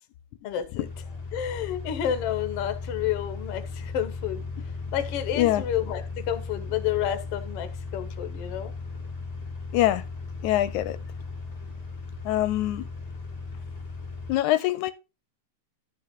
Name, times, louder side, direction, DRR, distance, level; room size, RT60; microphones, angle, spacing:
voice 1, 0.4-0.9 1.3-4.5 4.9-8.7, left 10 dB, 65° left, 1.7 m, -30 dB
sound 1, 0.7-14.3, left 4 dB, 20° left, 1.3 m, -37 dB
voice 2, 9.7-10.0 10.4-11.0 12.3-12.9 14.3-14.9, left 14 dB, 85° left, 2.0 m, -24 dB
11.5 x 5.5 x 3.7 m
omnidirectional pair, 3.4 m